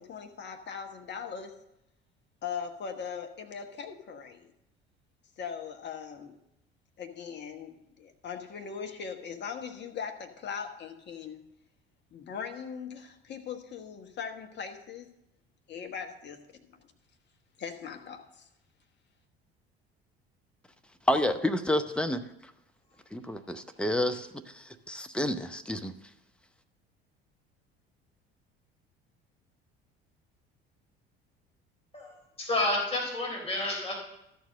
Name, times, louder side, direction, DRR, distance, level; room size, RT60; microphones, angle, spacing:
voice 1, 0.0-1.6 2.4-4.5 5.4-6.3 7.0-11.4 12.1-15.1 15.7-16.7 17.6-18.5, left 6 dB, 35° left, 4 dB, 1.3 m, -40 dB
voice 2, 21.1-22.5 23.1-25.9, left 1 dB, 5° left, 7 dB, 0.7 m, -30 dB
voice 3, 31.9-34.0, left 2 dB, 20° left, -2 dB, 3.8 m, -30 dB
13.0 x 4.7 x 6.5 m, 0.85 s
figure-of-eight pair, 60°, 30 cm